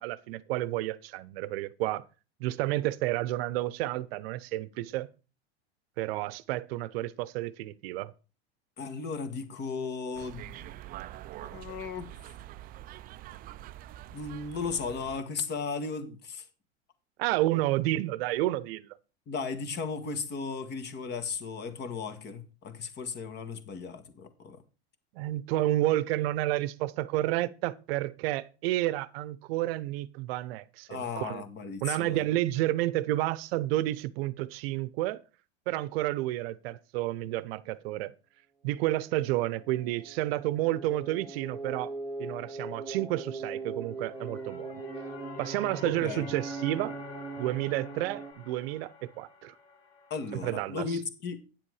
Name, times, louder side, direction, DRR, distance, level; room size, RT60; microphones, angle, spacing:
voice 1, 0.0-2.0 2.4-5.1 6.0-8.1 17.2-18.9 25.1-31.4 31.8-35.2 35.7-38.1 38.6-41.9 42.2-44.7 45.4-47.0 47.4-49.5 50.3-51.0, right 16 dB, 65° right, 0.7 m, -30 dB
voice 2, 8.8-10.7 11.5-12.1 14.1-16.5 17.5-17.6 19.3-24.6 30.9-32.2 45.8-46.3 50.1-51.4, left 5 dB, 35° left, 1.6 m, -36 dB
sound 1, 10.1-15.2, right 14 dB, 30° right, 0.4 m, -45 dB
sound 2, 39.0-48.3, right 3 dB, 5° left, 1.3 m, -41 dB
sound 3, 43.9-50.9, left 4 dB, 55° left, 2.6 m, -48 dB
9.2 x 7.5 x 4.8 m
supercardioid pair, 120°, 32 cm